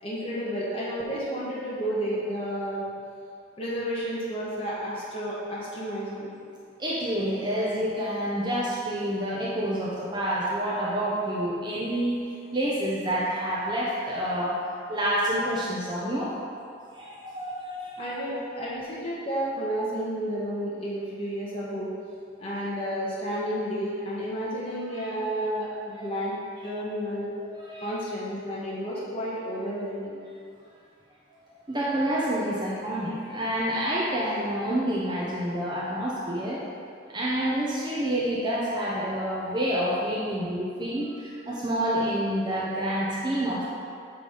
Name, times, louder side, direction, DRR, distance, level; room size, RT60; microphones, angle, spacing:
voice 1, 0.0-2.9 3.6-6.3 18.0-21.9 22.4-26.4 26.6-27.4 27.8-30.2, equal, 30° left, -7 dB, 1.3 m, -31 dB
voice 2, 6.8-12.3 12.5-14.6 14.9-16.4 16.9-18.3 24.9-25.1 25.9-26.0 27.4-27.9 31.5-36.6 37.1-43.7, right 1 dB, 20° right, -7 dB, 0.8 m, -28 dB
8.4 x 3.5 x 5.6 m, 2.4 s
head